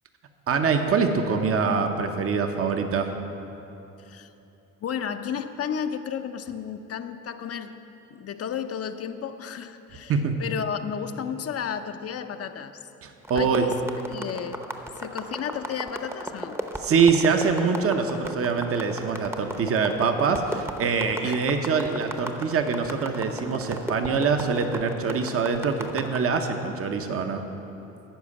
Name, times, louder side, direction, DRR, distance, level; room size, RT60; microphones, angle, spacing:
voice 1, 0.5-3.1 10.1-10.4 13.0-13.7 16.8-27.4, right 5 dB, 50° right, 6 dB, 0.9 m, -24 dB
voice 2, 4.0-4.3 4.8-7.8 8.1-10.1 10.4-12.8 13.4-13.7 14.1-14.6 15.0-16.6 21.2-21.3, left 8 dB, 50° left, 8 dB, 0.6 m, -33 dB
sound 1, 13.2-26.2, right 1 dB, 10° right, 0.7 m, -35 dB
11.5 x 5.0 x 8.5 m, 3.0 s
cardioid pair, 90°, 30 cm